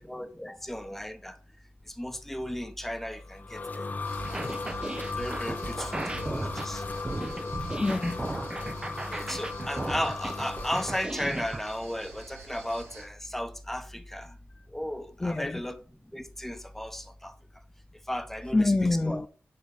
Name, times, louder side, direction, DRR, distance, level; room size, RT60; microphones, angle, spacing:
voice 1, 0.0-1.4 1.9-3.9 4.3-4.6 5.2-6.8 9.1-14.3 14.7-15.8 16.1-17.3 18.1-18.7 19.1-19.2, equal, 5° left, 1.1 m, -35 dB
sound 1, 3.1-11.1, left 4 dB, 40° left, 0.8 m, -37 dB
sound 2, 4.0-13.1, right 4 dB, 90° right, 4.8 m, -46 dB
sound 3, 4.2-11.6, right 2 dB, 20° right, 0.8 m, -35 dB
voice 2, 7.4-8.3 15.2-15.6 18.5-19.3, left 2 dB, 20° left, 0.4 m, -27 dB
11.0 x 4.0 x 5.1 m
wide cardioid pair, 100°, 4 cm